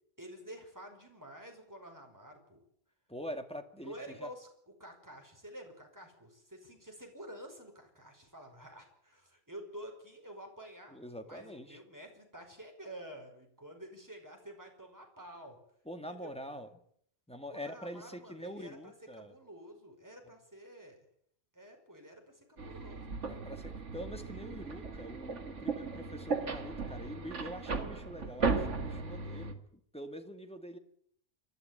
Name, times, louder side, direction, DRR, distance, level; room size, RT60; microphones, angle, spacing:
voice 1, 0.2-2.6 3.8-4.5 4.8-15.6 16.1-16.4 17.5-21.1 21.5-23.4, right 1 dB, 15° right, 3 dB, 5.2 m, -50 dB
voice 2, 3.1-4.3 10.9-11.8 15.9-16.7 17.3-19.3 23.2-29.6 29.9-30.8, equal, 5° left, 6 dB, 2.1 m, -45 dB
sound 1, 22.6-29.5, right 4 dB, 80° right, 2.2 m, -36 dB
28.0 x 12.0 x 9.1 m, 0.66 s
omnidirectional pair, 1.2 m